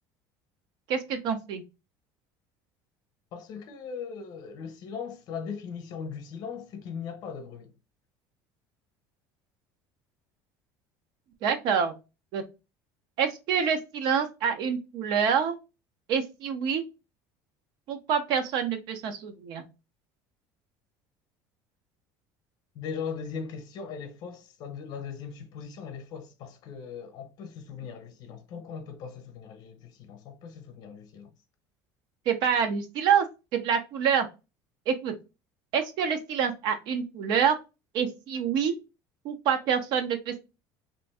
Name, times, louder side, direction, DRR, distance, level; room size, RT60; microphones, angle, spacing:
voice 1, 0.9-1.6 11.4-11.9 12.3-12.4 13.2-15.6 16.1-16.8 17.9-19.6 32.3-33.3 33.5-34.3 34.9-35.1 35.7-37.6 37.9-38.8 39.2-40.4, right 7 dB, 60° right, 0.7 m, -26 dB
voice 2, 3.3-7.7 22.7-31.3, left 6 dB, 55° left, 0.8 m, -39 dB
3.0 x 2.6 x 3.4 m
cardioid pair, 145°, 9 cm